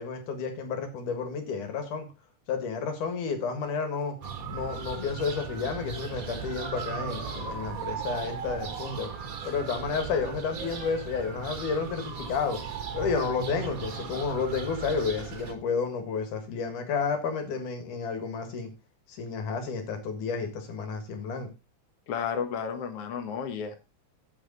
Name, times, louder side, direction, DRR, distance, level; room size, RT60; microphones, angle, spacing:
voice 1, 0.0-2.1 2.5-4.2 4.5-9.1 9.4-12.6 12.9-18.7 19.1-21.5, left 5 dB, 90° left, 3.3 m, -31 dB
sound 1, 4.2-15.5, right 6 dB, 55° right, 0.9 m, -37 dB
voice 2, 22.1-23.7, left 7 dB, 55° left, 2.1 m, -32 dB
15.0 x 5.0 x 4.0 m
omnidirectional pair, 3.5 m